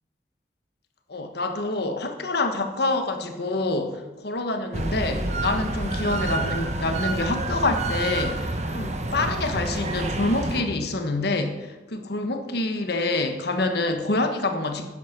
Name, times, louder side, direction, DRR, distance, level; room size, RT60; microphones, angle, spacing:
voice 1, 1.1-14.9, left 2 dB, 65° left, 6 dB, 1.3 m, -27 dB
sound 1, 4.7-10.6, right 2 dB, 40° right, 1.2 m, -28 dB
12.0 x 10.5 x 6.0 m, 1.2 s
head